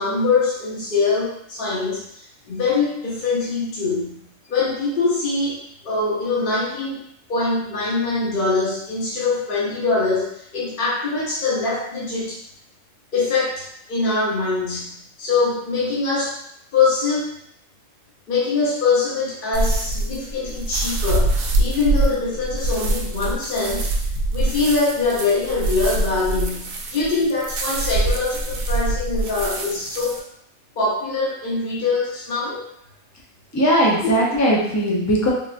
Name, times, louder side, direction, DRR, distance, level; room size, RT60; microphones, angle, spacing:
voice 1, 0.0-4.2 4.5-5.6 5.8-12.4 13.1-16.4 16.7-17.3 18.3-23.9 24.3-30.2 30.8-32.6, left 3 dB, 50° left, -6 dB, 0.8 m, -23 dB
sound 1, 19.5-30.2, right 2 dB, 70° right, 0.4 m, -24 dB
voice 2, 33.5-35.3, equal, 25° left, -3 dB, 0.3 m, -19 dB
3.6 x 2.4 x 2.5 m, 0.73 s
omnidirectional pair, 1.3 m